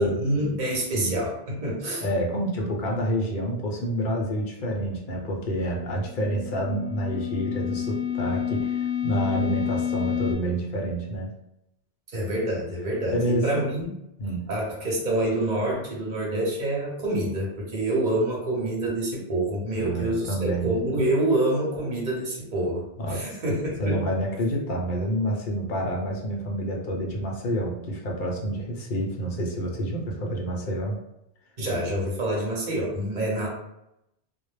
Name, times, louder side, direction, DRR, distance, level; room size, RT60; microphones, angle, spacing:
voice 1, 0.2-2.0 12.1-13.9 14.5-24.0 31.6-33.5, right 1 dB, 45° right, -3 dB, 0.9 m, -27 dB
voice 2, 2.0-11.3 13.1-13.7 14.2-14.5 19.7-20.7 23.0-23.3 23.8-31.0, right 1 dB, 55° left, 0 dB, 0.7 m, -28 dB
sound 1, 5.9-10.3, left 9 dB, 90° left, 0.9 m, -29 dB
2.2 x 2.1 x 3.1 m, 0.83 s
omnidirectional pair, 1.1 m